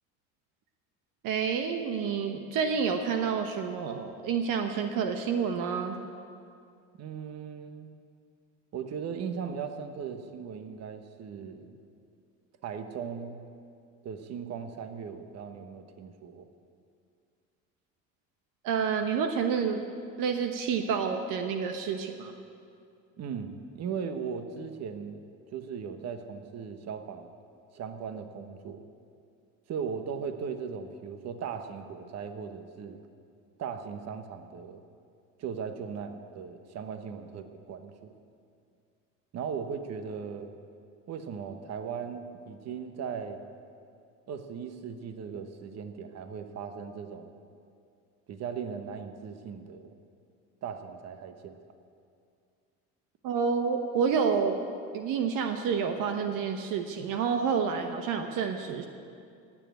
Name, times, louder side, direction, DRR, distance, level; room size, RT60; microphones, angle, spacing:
voice 1, 1.2-6.0 18.6-19.8 20.2-22.3 53.2-54.6 54.9-58.9, right 6 dB, 65° right, 6 dB, 1.1 m, -29 dB
voice 2, 7.0-7.9 8.7-11.8 12.6-13.5 14.0-16.5 23.2-25.2 25.5-27.3 27.7-28.8 29.7-33.0 33.6-34.8 35.4-38.1 39.3-40.5 41.1-43.4 44.3-47.3 48.3-49.8 50.6-51.6, right 6 dB, 45° right, 8 dB, 1.2 m, -38 dB
17.5 x 7.3 x 9.0 m, 2.4 s
supercardioid pair, 105°, 34 cm